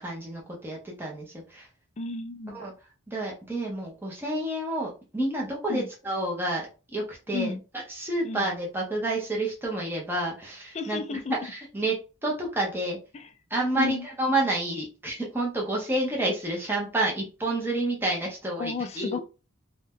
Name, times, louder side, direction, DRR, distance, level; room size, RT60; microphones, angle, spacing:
voice 1, 0.0-1.7 2.5-2.7 3.1-6.6 6.9-7.5 7.9-11.9 12.2-13.0 13.5-19.2, right 1 dB, 10° right, 0.6 m, -29 dB
voice 2, 2.0-2.6 5.7-5.9 7.3-7.6 8.2-8.5 10.7-11.4 13.1-13.3 13.7-14.1 18.6-19.2, left 4 dB, 30° left, 0.3 m, -32 dB
2.6 x 2.2 x 3.4 m
head